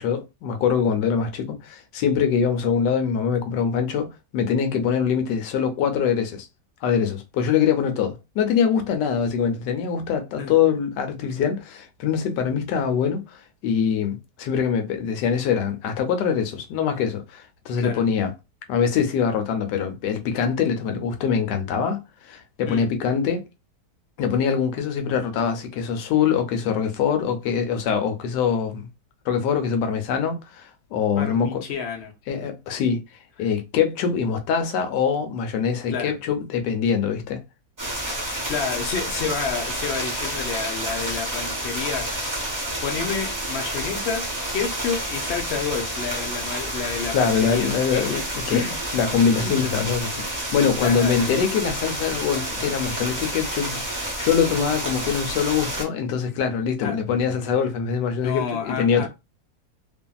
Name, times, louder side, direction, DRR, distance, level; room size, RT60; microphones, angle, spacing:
voice 1, 0.0-6.5 6.8-18.3 18.7-23.4 24.2-28.9 29.3-31.6 32.3-33.0 33.4-37.4 47.1-48.6 48.9-59.1, left 7 dB, 85° left, 1.2 m, -23 dB
voice 2, 31.2-32.1 33.4-33.5 35.9-36.1 38.5-42.5 42.8-44.3 44.5-48.1 48.5-48.8 49.4-49.6 50.8-51.3 56.8-57.0 58.2-59.1, left 6 dB, 55° left, 0.7 m, -30 dB
sound 1, 37.8-55.8, right 1 dB, 15° right, 0.7 m, -29 dB
2.8 x 2.5 x 2.2 m
omnidirectional pair, 1.8 m